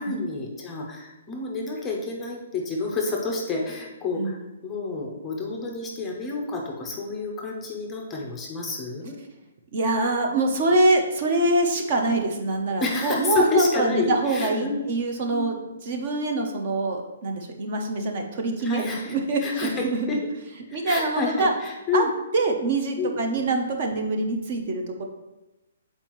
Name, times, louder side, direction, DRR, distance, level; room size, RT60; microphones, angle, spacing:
voice 1, 0.0-9.2 12.8-14.8 15.3-15.5 18.6-19.2 19.4-19.7 20.1-20.2 20.7-22.1 23.0-23.2, left 3 dB, 10° left, -1 dB, 0.6 m, -29 dB
voice 2, 9.7-20.2 20.7-21.5 21.9-22.1 22.3-25.0, right 2 dB, 30° right, 3 dB, 0.6 m, -24 dB
7.3 x 4.4 x 3.0 m, 1.0 s
hypercardioid pair, 180°, 0 cm